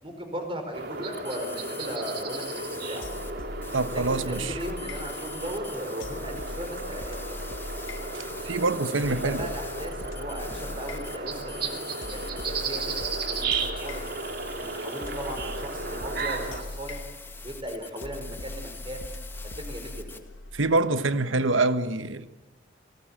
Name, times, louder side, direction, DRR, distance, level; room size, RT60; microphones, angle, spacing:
voice 1, 0.0-3.1 3.9-7.2 9.0-14.1 14.6-17.0 17.4-19.1 19.5-20.0, equal, 25° right, 4.8 m, -37 dB
sound 1, 0.7-16.6, right 3 dB, 50° right, 2.8 m, -34 dB
sound 2, 1.1-3.3 3.6-20.2, left 5 dB, 10° left, 1.6 m, -44 dB
sound 3, 3.0-20.8, left 2 dB, 75° left, 1.4 m, -41 dB
voice 2, 3.7-4.6 8.1-9.5 20.5-22.3, right 2 dB, 80° right, 1.3 m, -25 dB
28.5 x 19.0 x 8.9 m
head